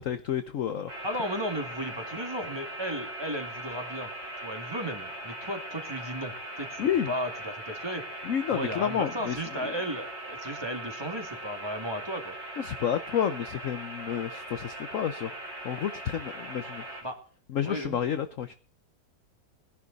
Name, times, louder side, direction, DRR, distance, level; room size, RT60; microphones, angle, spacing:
voice 1, 0.0-0.9 6.8-7.1 8.2-9.7 12.6-17.0 17.5-18.5, left 9 dB, 55° left, 11 dB, 1.0 m, -30 dB
sound 1, 0.9-17.0, right 1 dB, 85° right, 4.9 m, -40 dB
voice 2, 1.0-4.1 4.4-8.0 8.5-12.3 17.0-17.2 17.6-18.0, equal, 15° right, 5 dB, 2.3 m, -35 dB
19.0 x 11.0 x 4.1 m, 0.42 s
omnidirectional pair, 1.9 m